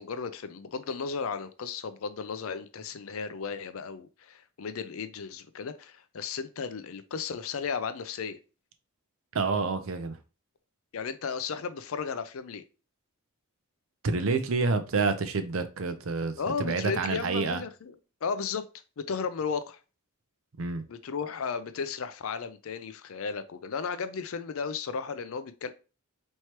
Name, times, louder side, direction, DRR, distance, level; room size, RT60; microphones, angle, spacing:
voice 1, 0.0-8.4 10.9-12.6 16.4-17.9 18.2-18.7 19.0-19.8 20.9-25.7, left 5 dB, 70° left, 0.5 m, -34 dB
voice 2, 9.3-10.2 14.0-17.6 20.6-20.8, right 4 dB, 65° right, 0.6 m, -28 dB
4.5 x 3.2 x 2.9 m
head